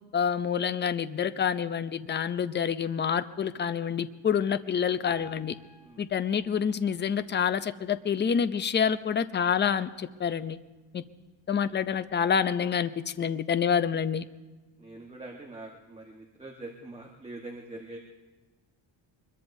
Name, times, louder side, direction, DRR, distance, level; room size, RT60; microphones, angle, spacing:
voice 1, 0.1-5.5 6.0-10.6 10.9-11.0 11.5-14.3, left 7 dB, 25° left, 13 dB, 0.4 m, -27 dB
Piano, 5.0-8.2 8.7-8.8 9.1-9.2 9.9-10.0 10.6-10.7, left 6 dB, 50° left, 4.4 m, -50 dB
voice 2, 14.8-18.0, right 2 dB, 10° right, 0 dB, 1.2 m, -44 dB
23.5 x 21.5 x 2.7 m, 1.2 s
cardioid pair, 150°, 48 cm